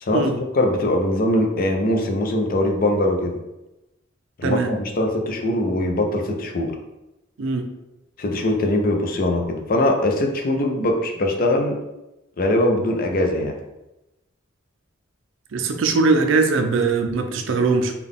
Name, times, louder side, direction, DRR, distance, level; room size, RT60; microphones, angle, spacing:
voice 1, 0.0-3.4 4.4-6.8 8.2-11.8 12.4-13.6, left 1 dB, 45° left, 3 dB, 0.5 m, -21 dB
voice 2, 15.5-17.9, right 4 dB, 65° right, 5 dB, 0.4 m, -20 dB
3.7 x 2.3 x 3.5 m, 0.96 s
head